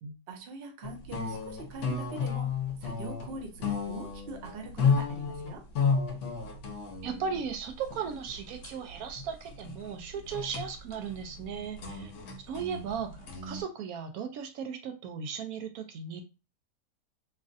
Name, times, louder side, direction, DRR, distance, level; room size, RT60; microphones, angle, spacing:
voice 1, 0.3-2.5 2.8-5.6, right 3 dB, 55° right, 4 dB, 0.7 m, -43 dB
sound 1, 0.8-13.6, left 5 dB, 65° left, 0.9 m, -33 dB
voice 2, 7.0-12.1 12.4-16.2, right 6 dB, 80° right, 6 dB, 1.0 m, -37 dB
3.1 x 2.4 x 2.5 m, 0.29 s
omnidirectional pair, 1.5 m